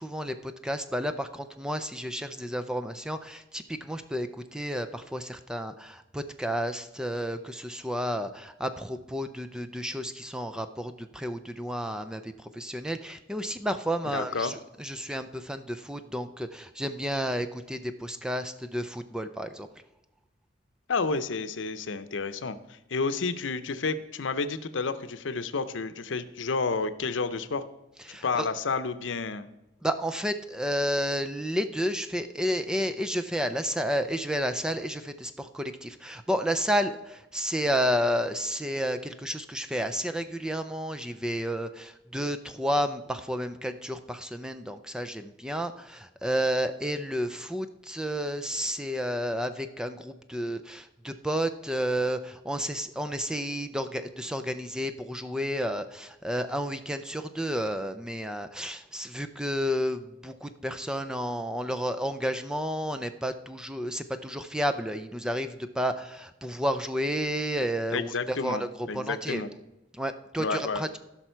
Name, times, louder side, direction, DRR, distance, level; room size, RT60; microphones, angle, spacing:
voice 1, 0.0-19.7 28.1-28.2 29.8-68.7 68.9-69.4 69.9-70.9, equal, 5° right, 9 dB, 0.4 m, -31 dB
voice 2, 14.0-14.5 20.9-27.6 28.1-29.5 67.9-69.5 70.4-70.8, left 4 dB, 90° left, 12 dB, 0.7 m, -30 dB
15.5 x 6.0 x 4.5 m, 0.94 s
head